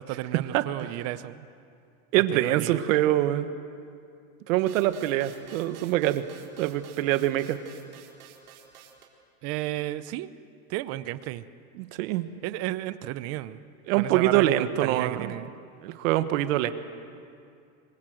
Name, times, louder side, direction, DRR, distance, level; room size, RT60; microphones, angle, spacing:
voice 1, 0.0-1.5 2.3-2.8 9.4-10.3 10.7-11.4 12.4-13.6 13.9-15.5, right 15 dB, 35° right, 14 dB, 0.8 m, -33 dB
voice 2, 2.1-3.5 4.5-6.2 6.6-7.6 11.8-12.3 13.9-15.3 15.8-16.7, right 14 dB, 65° right, 10 dB, 1.5 m, -24 dB
sound 1, 4.7-9.0, right 8 dB, 85° right, 4.0 m, -50 dB
26.5 x 22.0 x 7.7 m, 2.4 s
supercardioid pair, 155°, 43 cm